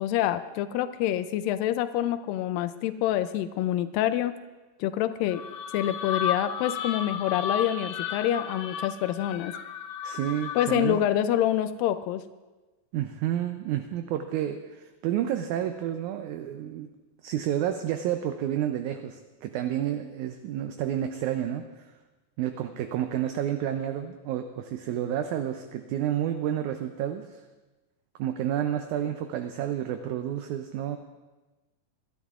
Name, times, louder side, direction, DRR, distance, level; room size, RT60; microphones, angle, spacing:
voice 1, 0.0-4.4 4.8-5.4 5.7-9.5 10.6-12.2, left 12 dB, 90° left, 11 dB, 2.3 m, -27 dB
sound 1, 5.3-11.0, left 7 dB, 70° left, 1.8 m, -33 dB
voice 2, 10.0-11.0 12.9-16.9 17.2-21.9 22.4-27.4 28.2-31.0, right 11 dB, 80° right, 7 dB, 1.8 m, -30 dB
25.0 x 12.0 x 2.4 m, 1.2 s
omnidirectional pair, 3.9 m